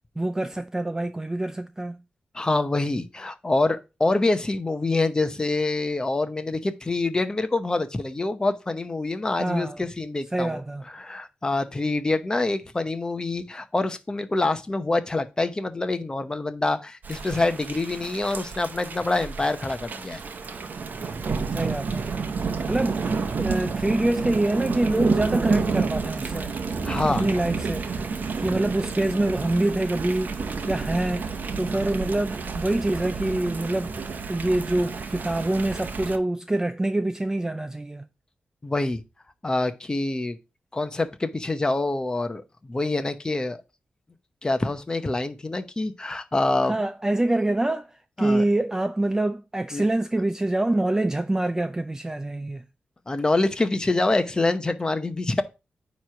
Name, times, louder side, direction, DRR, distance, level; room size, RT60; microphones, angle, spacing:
voice 1, 0.2-2.0 9.4-9.9 10.3-10.8 21.5-22.1 22.7-23.0 23.4-26.5 27.1-28.1 28.4-33.9 34.3-38.1 46.6-52.6, right 1 dB, 15° right, 0.4 m, -25 dB
voice 2, 2.3-10.6 10.9-20.2 26.8-27.2 38.6-39.0 39.4-40.4 40.7-43.6 44.4-46.8 48.2-48.4 49.7-49.9 53.1-55.4, left 2 dB, 20° left, 0.8 m, -26 dB
Thunder / Rain, 17.0-36.2, right 4 dB, 55° right, 0.9 m, -30 dB
9.3 x 3.1 x 5.7 m
wide cardioid pair, 130°, 4 cm